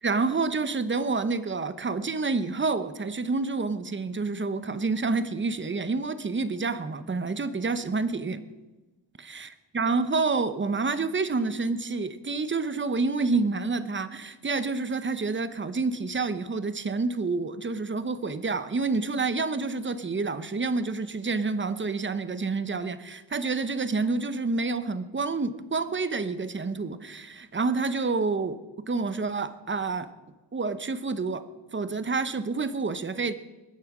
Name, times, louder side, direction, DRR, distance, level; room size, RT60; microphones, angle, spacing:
voice 1, 0.0-8.4 9.3-9.5 9.7-28.6 28.9-30.1 30.5-31.4 31.7-33.3, right 4 dB, 25° right, 13 dB, 0.8 m, -28 dB
21.0 x 8.7 x 6.0 m, 1.2 s
wide cardioid pair, 115°, 46 cm